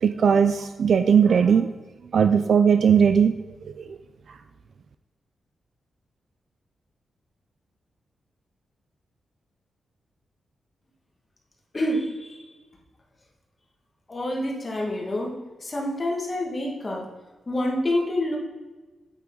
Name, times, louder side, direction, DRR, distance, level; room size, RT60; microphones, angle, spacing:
voice 1, 0.0-1.7 2.1-3.3 3.6-4.0, right 7 dB, 60° right, 9 dB, 0.4 m, -19 dB
voice 2, 11.7-12.4 14.1-15.3 15.6-17.1 17.5-18.4, left 1 dB, 25° left, -1 dB, 1.8 m, -27 dB
8.6 x 8.4 x 3.9 m, 1.2 s
wide cardioid pair, 135°, 0 cm